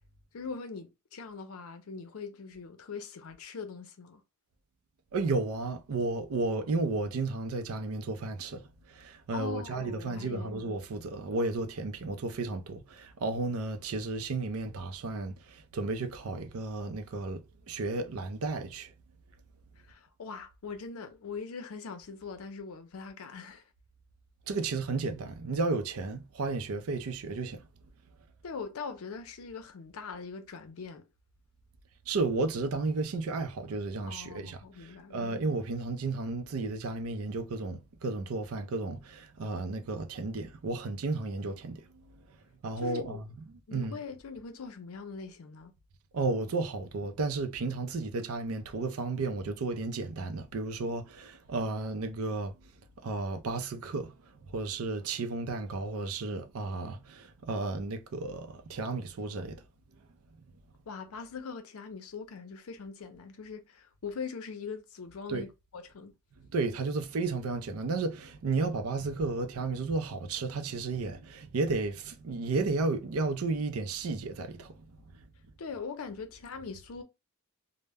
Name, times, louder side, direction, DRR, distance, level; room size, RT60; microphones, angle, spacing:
voice 1, 0.3-4.2 9.3-10.6 19.9-23.6 28.4-31.1 34.1-35.4 42.8-43.2 43.7-45.7 60.9-66.1 75.6-77.0, left 5 dB, 80° left, 0.5 m, -42 dB
voice 2, 5.1-18.9 24.5-27.6 32.1-41.8 42.6-43.2 43.7-43.9 46.1-52.5 53.0-54.1 54.5-59.6 65.3-65.4 66.4-74.7, right 3 dB, 80° right, 0.5 m, -33 dB
2.1 x 2.0 x 3.3 m
head